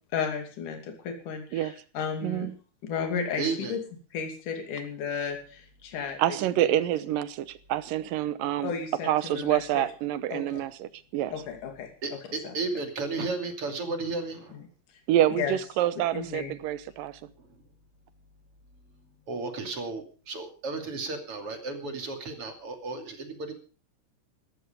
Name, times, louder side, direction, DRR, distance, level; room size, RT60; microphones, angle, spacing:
voice 1, 0.1-2.5 2.8-3.8 4.1-6.2 8.6-9.8 10.3-10.6 11.3-11.9 12.4-12.5 14.5-14.6 15.4-15.5 16.1-16.5, left 6 dB, 65° left, 4 dB, 4.2 m, -33 dB
voice 2, 2.2-2.5 6.2-8.7 9.0-11.3 15.1-17.2, right 12 dB, 85° right, 15 dB, 2.6 m, -27 dB
voice 3, 3.4-3.8 12.0-14.6 17.4-17.5 19.3-23.5, right 3 dB, 45° right, 5 dB, 3.6 m, -33 dB
16.0 x 14.0 x 5.1 m, 0.38 s
omnidirectional pair, 3.9 m